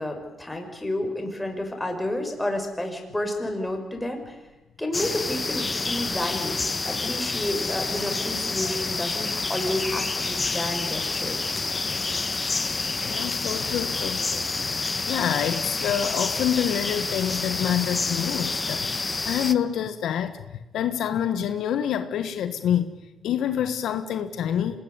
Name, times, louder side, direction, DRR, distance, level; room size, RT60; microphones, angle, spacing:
voice 1, 0.0-4.4 4.8-6.6 6.8-11.4, left 1 dB, 10° left, 3 dB, 6.2 m, -30 dB
sound 1, 4.9-19.5, left 3 dB, 25° left, 1.3 m, -28 dB
voice 2, 13.0-20.3 20.7-22.9 23.2-24.8, left 9 dB, 75° left, 9 dB, 1.5 m, -27 dB
26.0 x 19.0 x 9.8 m, 1.0 s
cardioid pair, 90°, 0 cm